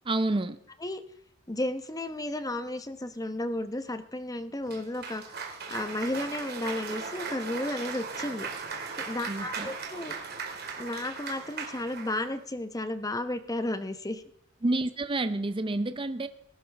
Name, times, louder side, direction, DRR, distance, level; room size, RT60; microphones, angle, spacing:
voice 1, 0.1-0.6 9.3-9.7 14.6-16.3, right 2 dB, 25° right, 11 dB, 0.6 m, -29 dB
voice 2, 1.5-5.2 5.7-8.5 9.0-10.1 10.8-14.2, left 1 dB, 20° left, 10 dB, 0.9 m, -33 dB
Cheering / Applause, 4.7-12.4, right 5 dB, 55° right, 2.3 m, -38 dB
20.0 x 11.5 x 3.4 m, 0.70 s
head